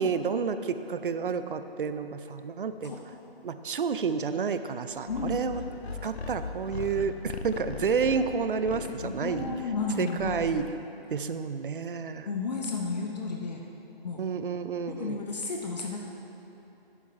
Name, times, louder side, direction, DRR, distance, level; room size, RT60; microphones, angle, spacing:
voice 1, 0.0-2.9 3.4-5.6 6.0-9.5 10.0-10.7 11.1-12.3 14.2-15.2, right 5 dB, 60° right, 11 dB, 0.5 m, -30 dB
sound 1, 5.1-10.8, left 4 dB, 90° left, 0.7 m, -39 dB
voice 2, 5.1-5.4 9.0-10.7 12.2-13.7 14.0-14.3 14.9-16.0, left 4 dB, 45° left, 0 dB, 0.8 m, -33 dB
11.0 x 8.9 x 3.2 m, 3.0 s
figure-of-eight pair, 145°, 31 cm